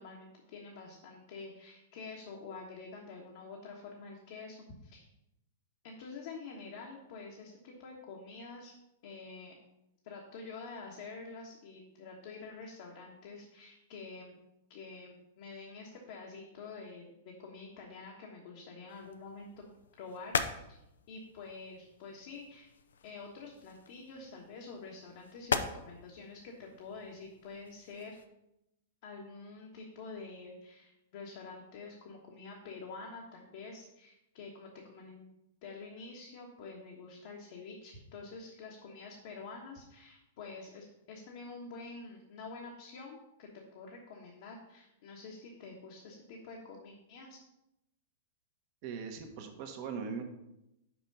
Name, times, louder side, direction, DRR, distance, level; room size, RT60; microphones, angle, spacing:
voice 1, 0.0-5.1 5.8-8.7 9.0-9.5 10.0-14.4 14.7-19.7 20.0-20.8 21.1-22.7 23.0-28.2 29.0-35.3 35.6-47.4, left 4 dB, 60° left, -1 dB, 1.3 m, -47 dB
sound 1, 18.9-28.3, left 5 dB, 90° left, 0.5 m, -41 dB
voice 2, 48.8-50.2, right 6 dB, 50° right, 5 dB, 1.2 m, -40 dB
6.1 x 4.4 x 5.4 m, 0.87 s
hypercardioid pair, 125°, 0 cm